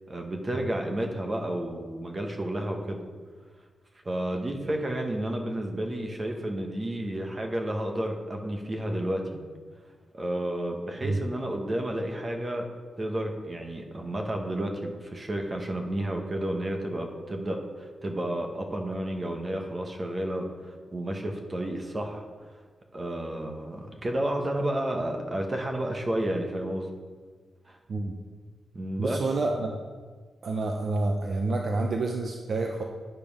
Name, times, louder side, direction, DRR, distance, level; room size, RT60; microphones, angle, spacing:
voice 1, 0.1-3.0 4.0-9.4 10.1-12.7 13.0-22.2 22.9-26.9 27.7-27.8 28.7-29.2, right 1 dB, 20° right, 3 dB, 0.9 m, -31 dB
voice 2, 29.0-29.8 30.4-32.8, right 2 dB, 45° right, 2 dB, 0.6 m, -28 dB
9.0 x 5.2 x 5.2 m, 1.5 s
wide cardioid pair, 170°, 0 cm